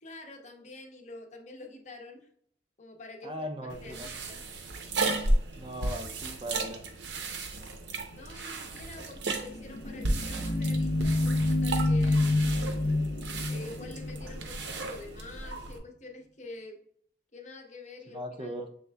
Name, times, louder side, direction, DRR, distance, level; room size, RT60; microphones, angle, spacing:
voice 1, 0.0-2.3 2.8-4.4 8.1-12.5 13.4-16.8 17.3-18.6, left 2 dB, 40° left, 2 dB, 0.8 m, -47 dB
voice 2, 3.2-4.1 5.5-6.8 18.1-18.7, equal, 30° right, 5 dB, 0.4 m, -38 dB
sound 1, 3.7-15.8, right 2 dB, 70° right, 0.6 m, -34 dB
sound 2, 9.4-14.9, left 2 dB, 65° left, 0.5 m, -28 dB
6.6 x 3.4 x 2.2 m, 0.64 s
head